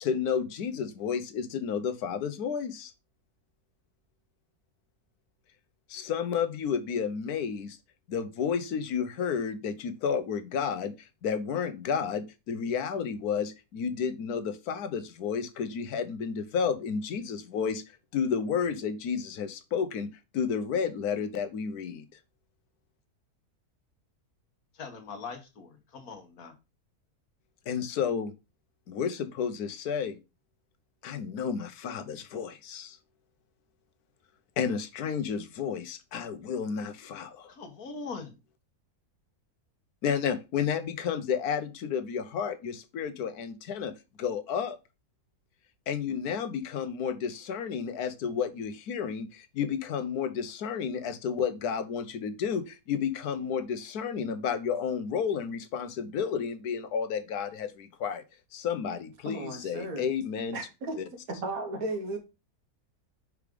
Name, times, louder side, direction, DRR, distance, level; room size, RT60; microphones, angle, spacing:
voice 1, 0.0-2.9 5.9-7.8 8.1-17.8 18.1-20.1 20.3-22.0 27.7-28.3 28.9-30.2 31.0-33.0 34.6-37.5 40.0-43.9 44.2-44.8 45.9-58.2 58.5-60.6 61.0-61.1, left 7 dB, 90° left, 1.3 m, -31 dB
voice 2, 24.7-26.5 37.5-38.4, left 4 dB, 75° left, 1.7 m, -41 dB
voice 3, 59.3-60.1 60.5-61.0 61.3-62.2, right 2 dB, 70° right, 1.8 m, -35 dB
4.9 x 4.8 x 5.0 m
omnidirectional pair, 1.6 m